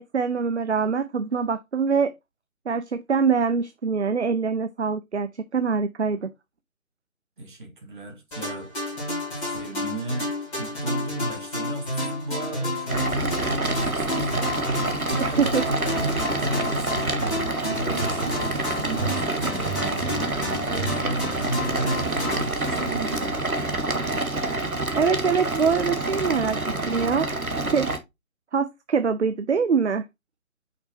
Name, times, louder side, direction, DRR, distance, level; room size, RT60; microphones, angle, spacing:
voice 1, 0.0-2.1 2.7-6.3 15.2-15.6 24.9-26.6 26.9-27.3 27.7-27.9 28.5-30.1, right 5 dB, 55° right, 0.5 m, -24 dB
voice 2, 7.4-8.7 9.4-20.2 20.7-23.5, right 1 dB, 35° right, 1.9 m, -34 dB
sound 1, 8.3-23.7, left 1 dB, 5° left, 2.4 m, -31 dB
sound 2, 12.9-28.0, right 2 dB, 80° right, 1.4 m, -27 dB
5.8 x 4.0 x 4.5 m
figure-of-eight pair, 150°, 42 cm